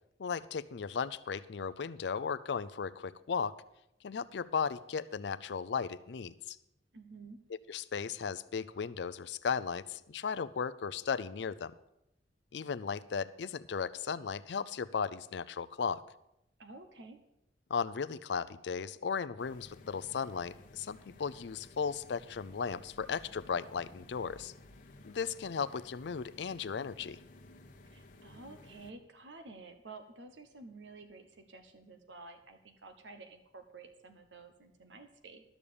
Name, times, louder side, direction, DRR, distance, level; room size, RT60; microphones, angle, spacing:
voice 1, 0.2-3.6 4.0-6.6 7.7-11.7 12.5-16.0 17.7-24.5 25.0-27.2, left 6 dB, 65° left, 15 dB, 0.5 m, -36 dB
voice 2, 6.9-7.4 16.6-17.2 27.9-35.4, right 3 dB, 80° right, 7 dB, 1.1 m, -51 dB
sound 1, 19.4-28.9, left 2 dB, 50° left, 1.1 m, -56 dB
12.5 x 6.8 x 7.0 m, 0.84 s
head